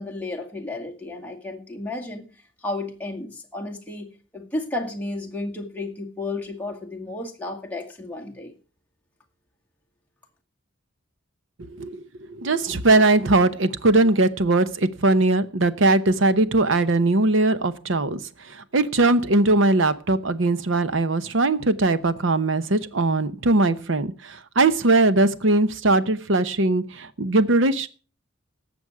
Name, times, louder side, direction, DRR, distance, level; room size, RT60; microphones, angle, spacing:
voice 1, 0.0-2.3 2.6-8.5, left 2 dB, 10° left, 0 dB, 1.9 m, -32 dB
voice 2, 11.7-12.0 12.3-18.2 18.5-27.9, right 2 dB, 75° right, 14 dB, 0.9 m, -20 dB
17.5 x 7.1 x 4.8 m, 0.36 s
head